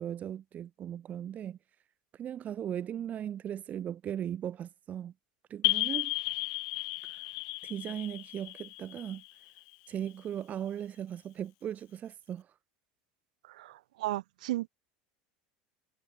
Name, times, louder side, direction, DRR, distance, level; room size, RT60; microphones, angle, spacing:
voice 1, 0.0-1.6 2.1-5.1 5.5-6.1 7.0-7.3 7.6-9.2 9.9-12.5, right 10 dB, 40° right, 7.8 m, -38 dB
sound 1, 5.6-10.1, left 35 dB, 70° left, 2.8 m, -34 dB
voice 2, 13.5-14.7, right 16 dB, 80° right, 6.7 m, -35 dB
hypercardioid pair, 90°, 4 cm